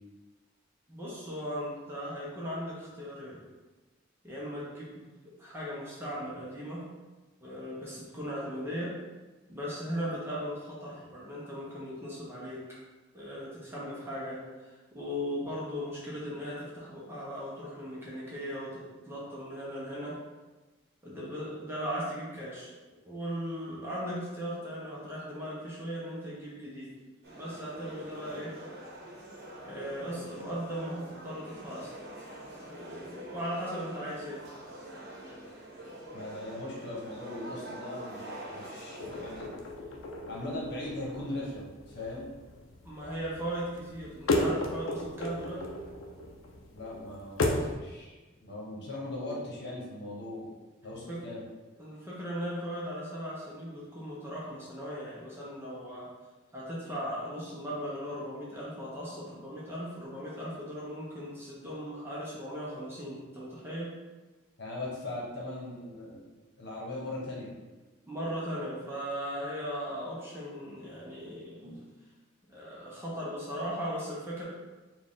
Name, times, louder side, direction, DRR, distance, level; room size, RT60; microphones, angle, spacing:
voice 1, 0.9-3.4 4.2-5.0 5.4-6.9 7.4-8.9 9.5-12.6 13.1-20.1 21.0-22.7 23.0-26.9 27.3-28.5 29.6-31.9 32.7-34.4 42.8-45.6 51.1-51.2 51.8-56.1 56.5-63.9 68.0-71.8 72.5-74.4, equal, 10° right, -7 dB, 0.8 m, -38 dB
sound 1, 27.2-39.5, right 1 dB, 55° right, 1.0 m, -45 dB
voice 2, 36.1-39.5 40.3-42.3 46.7-50.5 50.8-51.4 64.6-66.3 66.6-67.5, left 1 dB, 55° left, -4 dB, 1.1 m, -39 dB
sound 2, 39.0-47.8, left 1 dB, 80° left, 0.5 m, -35 dB
4.4 x 2.4 x 3.7 m, 1.2 s
head